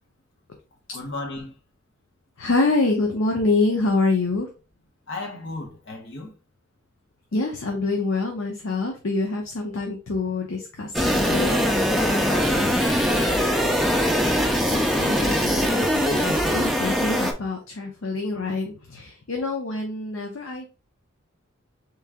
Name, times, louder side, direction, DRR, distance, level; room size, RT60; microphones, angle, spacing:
voice 1, 0.9-1.6 5.1-6.3 12.1-13.0 13.3-13.8, left 2 dB, 60° left, 1.0 m, -35 dB
voice 2, 2.4-4.5 7.3-11.7 14.7-20.7, left 3 dB, 75° left, 0.7 m, -26 dB
sound 1, 10.9-17.3, equal, ahead, 0.5 m, -22 dB
3.7 x 3.1 x 3.5 m
head